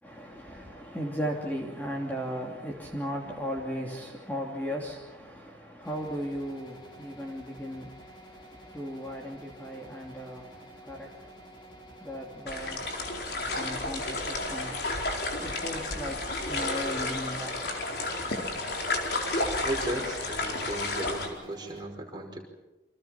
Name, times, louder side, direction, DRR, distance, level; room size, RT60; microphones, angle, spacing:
voice 1, 0.0-14.9 15.4-17.8, equal, 10° left, 2.9 m, -37 dB
sound 1, 5.8-21.8, right 1 dB, 25° left, 4.1 m, -50 dB
sound 2, 12.5-21.3, left 2 dB, 65° left, 4.3 m, -32 dB
voice 2, 19.6-22.4, right 1 dB, 25° right, 5.2 m, -35 dB
29.5 x 26.0 x 5.9 m
head